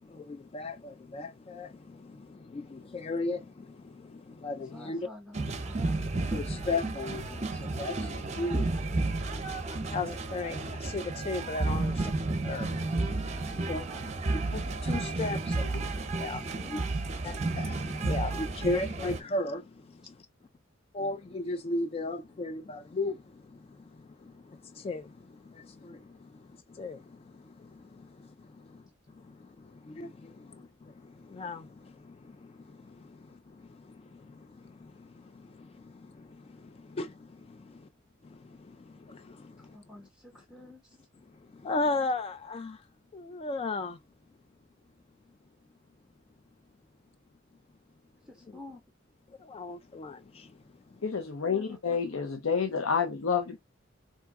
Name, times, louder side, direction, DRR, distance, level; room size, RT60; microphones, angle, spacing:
voice 1, 0.0-5.1 6.3-8.7 9.0-9.1 9.7-12.1 12.4-16.8 17.2-20.2 20.9-28.8 29.2-37.9 38.2-39.8 41.5-42.8 43.1-44.0 48.5-48.6 49.4-50.5, left 2 dB, 30° left, 0.3 m, -37 dB
voice 2, 4.7-6.0 8.3-9.3 9.6-9.8 11.8-12.0 14.0-14.2 16.4-17.0 39.6-41.0 48.3-48.8 51.5-51.8, left 1 dB, ahead, 0.8 m, -50 dB
sound 1, 5.3-19.2, right 2 dB, 35° right, 0.7 m, -32 dB
voice 3, 51.0-53.6, left 6 dB, 85° left, 0.7 m, -29 dB
3.5 x 2.7 x 4.6 m
head